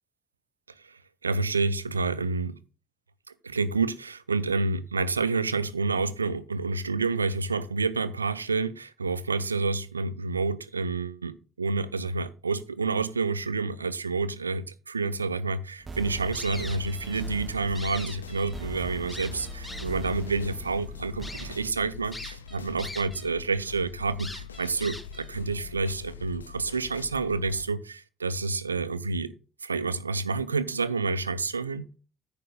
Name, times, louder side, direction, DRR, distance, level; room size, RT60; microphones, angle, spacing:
voice 1, 0.8-2.6 3.4-29.3 29.6-31.9, right 3 dB, 85° right, 0.4 m, -29 dB
sound 1, 15.8-21.7, right 3 dB, 40° right, 1.0 m, -42 dB
sound 2, 16.3-17.3 17.6-18.7 19.1-20.1 20.7-20.8 21.2-21.5 22.1-23.3 23.6-23.7 24.2-25.3, left 1 dB, 15° left, 2.4 m, -41 dB
sound 3, 16.4-27.7, left 7 dB, 85° left, 0.5 m, -43 dB
9.8 x 4.5 x 6.6 m
figure-of-eight pair, 45°, 0 cm